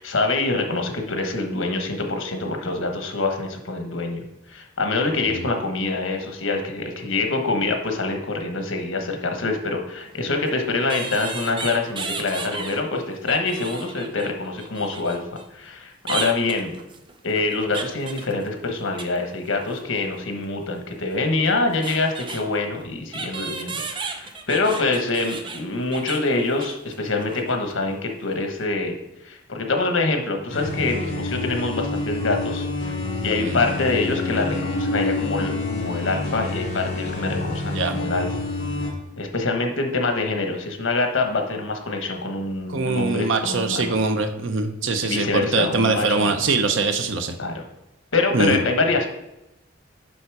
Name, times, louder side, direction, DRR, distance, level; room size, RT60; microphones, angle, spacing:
voice 1, 0.0-15.2 15.5-16.8 17.2-28.9 29.2-32.9 33.2-38.3 39.2-43.9 45.0-46.3 47.4-47.6 48.1-49.1, left 3 dB, 80° left, 4 dB, 1.3 m, -25 dB
sound 1, 10.0-10.1 10.9-12.8 13.1-15.4 16.1-19.2 19.4-19.9 21.1-21.2 21.5-22.4 23.1-27.0 27.2-27.4 27.7-27.9, right 4 dB, 25° right, 0.6 m, -34 dB
sound 2, 30.5-38.9, left 2 dB, 45° left, 2.8 m, -28 dB
voice 2, 42.7-47.3 48.3-48.6, right 3 dB, 75° right, 6 dB, 0.8 m, -23 dB
7.1 x 5.6 x 4.7 m, 0.89 s
head